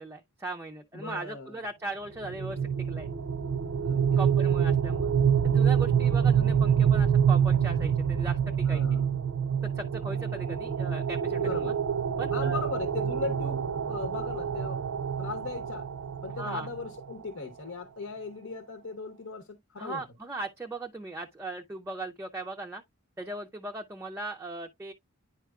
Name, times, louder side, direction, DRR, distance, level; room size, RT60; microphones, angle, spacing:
voice 1, 0.0-3.1 4.2-5.1 5.4-9.0 9.8-11.7 12.2-12.6 16.4-16.7 19.8-22.8 23.2-24.9, right 2 dB, 10° right, 0.4 m, -38 dB
voice 2, 0.9-1.5 3.8-4.2 8.6-9.2 11.4-11.7 12.3-14.8 15.2-15.9 16.2-20.0, left 3 dB, 70° left, 1.0 m, -38 dB
sound 1, 2.2-17.1, right 7 dB, 65° right, 0.5 m, -26 dB
9.9 x 4.6 x 2.3 m
head